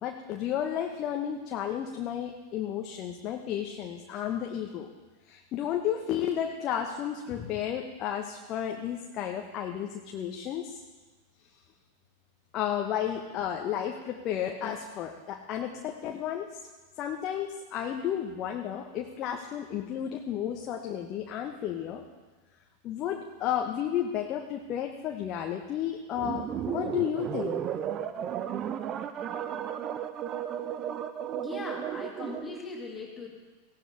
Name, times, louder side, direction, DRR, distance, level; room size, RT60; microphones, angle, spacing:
voice 1, 0.0-4.9 5.2-10.8 12.5-16.7 17.0-22.0 22.8-27.6, left 9 dB, 35° left, 3 dB, 1.1 m, -32 dB
sound 1, 26.2-32.6, right 9 dB, 30° right, 0.8 m, -34 dB
voice 2, 31.4-33.3, left 4 dB, 20° left, -1 dB, 2.6 m, -40 dB
18.5 x 16.5 x 3.5 m, 1.3 s
figure-of-eight pair, 90°, 0 cm